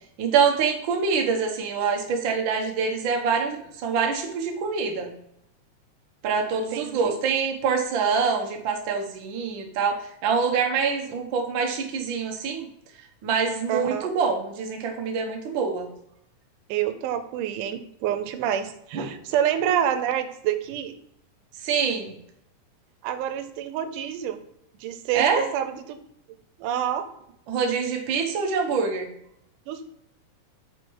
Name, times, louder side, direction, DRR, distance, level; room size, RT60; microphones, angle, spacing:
voice 1, 0.2-5.1 6.2-12.7 13.2-15.9 18.9-19.1 21.6-22.2 25.1-25.5 27.5-29.1, right 5 dB, 70° right, 1 dB, 1.1 m, -25 dB
voice 2, 6.7-7.1 13.7-14.1 16.7-21.0 23.0-24.4 24.8-26.0 26.6-27.1 29.7-29.9, right 10 dB, 90° right, 10 dB, 2.2 m, -27 dB
6.2 x 4.4 x 4.6 m, 0.75 s
omnidirectional pair, 3.6 m